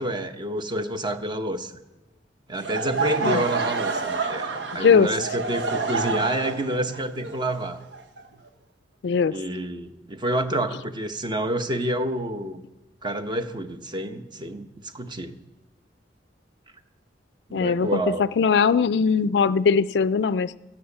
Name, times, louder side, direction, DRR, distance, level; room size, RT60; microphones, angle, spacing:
voice 1, 0.0-1.7 2.5-7.8 9.3-12.6 13.0-15.3 17.5-18.2, right 1 dB, 25° right, 9 dB, 0.8 m, -28 dB
Laughter / Crowd, 2.5-8.5, right 4 dB, 75° right, 1.0 m, -28 dB
voice 2, 4.8-5.1 9.0-9.4 17.5-18.0 18.4-20.6, left 5 dB, 70° left, 17 dB, 0.4 m, -20 dB
15.0 x 8.8 x 7.1 m, 1.1 s
head